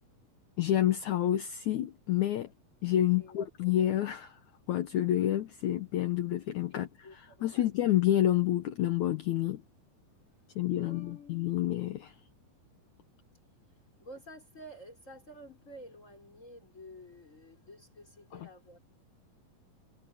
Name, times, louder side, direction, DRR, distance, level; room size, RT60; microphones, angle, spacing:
voice 1, 0.6-2.5 2.8-4.4 4.7-6.9 7.4-9.6 10.6-12.1, left 12 dB, 70° left, 2.2 m, -28 dB
voice 2, 3.2-3.7 6.7-7.7 10.7-11.4 13.7-18.8, left 1 dB, 20° left, 5.7 m, -51 dB
omnidirectional pair, 4.0 m